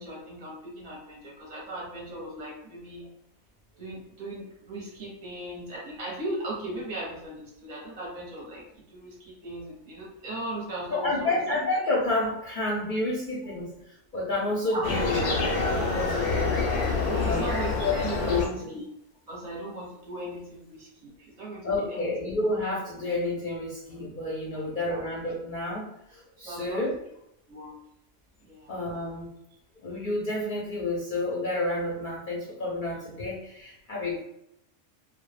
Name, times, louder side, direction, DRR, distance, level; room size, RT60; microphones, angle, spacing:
voice 1, 0.0-3.1 3.8-11.4 13.4-13.5 14.7-14.8 17.1-18.8 19.3-22.1 24.5-25.0 26.4-26.8 27.5-27.8 28.4-28.7, right 1 dB, 40° right, -4 dB, 0.7 m, -38 dB
voice 2, 10.9-15.2 15.6-16.5 17.2-17.5 17.8-18.7 21.6-26.9 28.7-29.3 29.8-34.2, left 2 dB, 55° left, -5 dB, 0.6 m, -30 dB
sound 1, 14.8-18.4, left 3 dB, 90° left, 0.9 m, -26 dB
2.1 x 2.0 x 3.1 m, 0.78 s
omnidirectional pair, 1.3 m